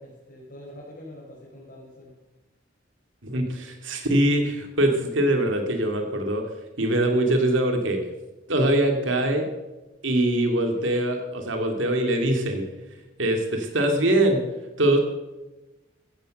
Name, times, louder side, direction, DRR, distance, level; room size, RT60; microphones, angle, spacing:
voice 1, 0.0-2.1, left 1 dB, 45° left, -5 dB, 4.7 m, -44 dB
voice 2, 3.2-8.0 8.5-9.5 10.0-14.4 14.8-15.0, right 1 dB, 85° right, 4 dB, 2.7 m, -23 dB
14.5 x 14.5 x 6.6 m, 1.1 s
head